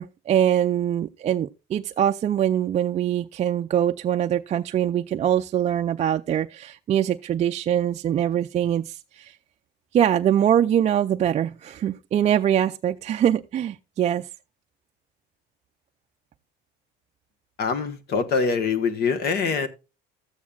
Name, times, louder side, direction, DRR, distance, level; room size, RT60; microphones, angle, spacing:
voice 1, 0.0-9.4 9.9-14.3, right 10 dB, 35° right, 0.4 m, -23 dB
voice 2, 17.6-19.7, left 5 dB, 55° left, 1.3 m, -24 dB
13.0 x 8.4 x 2.3 m
cardioid pair, 110°, 19 cm